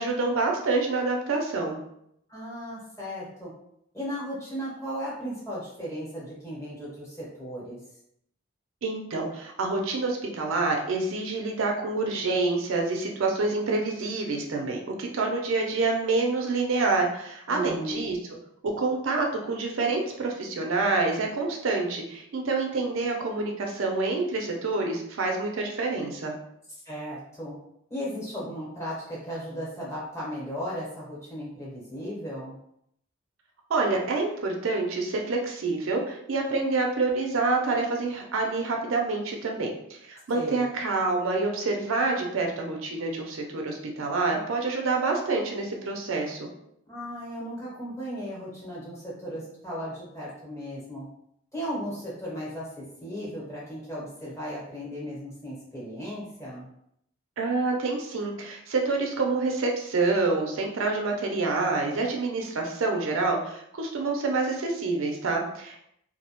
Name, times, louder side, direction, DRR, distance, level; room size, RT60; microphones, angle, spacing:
voice 1, 0.0-1.8 8.8-18.2 18.8-26.3 33.7-39.7 40.0-46.5 57.4-65.8, right 3 dB, 90° right, 1 dB, 0.5 m, -27 dB
voice 2, 2.3-3.5 3.9-7.8 17.5-18.1 26.8-27.6 27.9-32.6 40.3-40.6 46.9-51.1 51.5-56.7, equal, 15° left, -7 dB, 0.9 m, -36 dB
2.3 x 2.0 x 2.8 m, 0.74 s
head